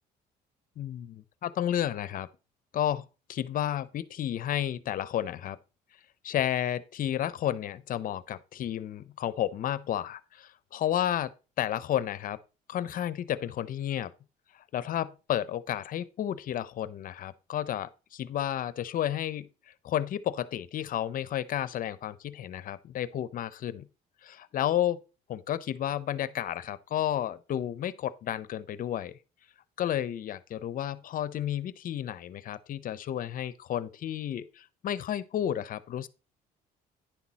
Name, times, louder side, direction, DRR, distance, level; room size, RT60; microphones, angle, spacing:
voice 1, 0.8-2.3 2.7-5.6 6.2-12.4 12.7-14.1 14.7-19.5 19.8-23.9 24.2-25.0 25.3-29.2 29.8-36.1, left 11 dB, 55° left, 0.7 m, -32 dB
10.5 x 6.0 x 4.1 m
cardioid pair, 110°, 17 cm